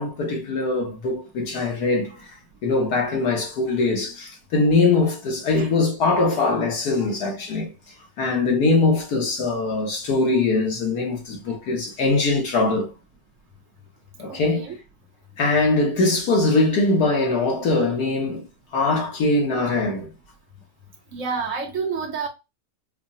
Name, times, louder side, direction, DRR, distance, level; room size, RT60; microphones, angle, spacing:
voice 1, 0.0-2.3 2.6-7.7 8.2-12.9 14.2-14.7 15.4-18.4 18.7-20.1, left 3 dB, 65° left, 1.7 m, -22 dB
voice 2, 14.3-14.8 21.1-22.3, right 5 dB, 55° right, 1.3 m, -29 dB
5.2 x 2.3 x 2.6 m
omnidirectional pair, 1.8 m